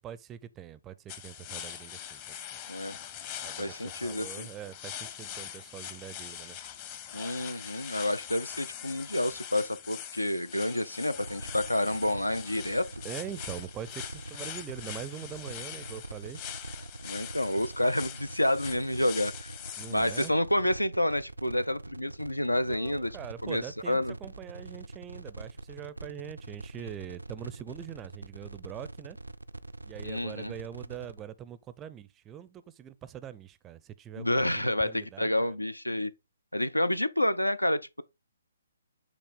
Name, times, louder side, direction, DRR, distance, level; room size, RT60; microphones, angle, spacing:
voice 1, 0.0-2.5 3.4-6.6 13.0-16.4 19.8-20.3 22.7-29.2 29.8-35.6, right 10 dB, 15° right, 0.4 m, -43 dB
sound 1, 1.1-20.3, left 10 dB, 30° left, 0.8 m, -43 dB
voice 2, 3.6-4.5 7.1-12.9 17.0-19.5 19.9-23.1 23.4-24.1 30.0-30.5 34.2-36.1 36.5-38.0, left 1 dB, 90° left, 0.5 m, -29 dB
sound 2, 11.2-31.2, right 2 dB, 85° right, 0.4 m, -44 dB
8.2 x 3.3 x 3.8 m
figure-of-eight pair, 130°, 0 cm